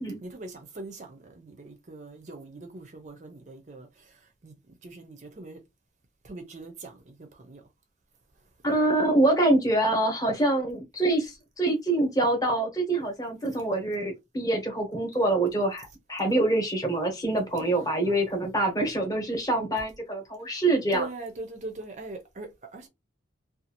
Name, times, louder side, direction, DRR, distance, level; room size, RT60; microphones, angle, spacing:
voice 1, 0.2-5.6 6.2-7.6 17.8-17.9 20.9-22.9, right 3 dB, 40° right, 0.5 m, -41 dB
voice 2, 8.6-21.1, right 2 dB, 20° left, 0.9 m, -25 dB
2.6 x 2.3 x 2.8 m
head